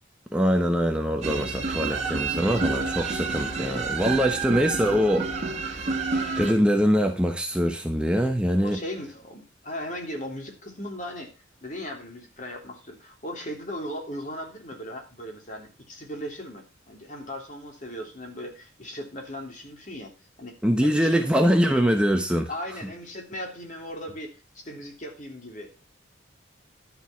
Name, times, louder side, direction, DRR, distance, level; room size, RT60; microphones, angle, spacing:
voice 1, 0.3-5.9 6.4-8.8 20.6-22.5, equal, 5° right, 0.9 m, -23 dB
sound 1, 1.2-6.5, right 4 dB, 35° right, 2.4 m, -29 dB
voice 2, 1.9-3.0 8.6-11.3 11.6-21.2 22.5-25.8, equal, 40° left, 3.2 m, -38 dB
11.5 x 7.1 x 5.8 m
head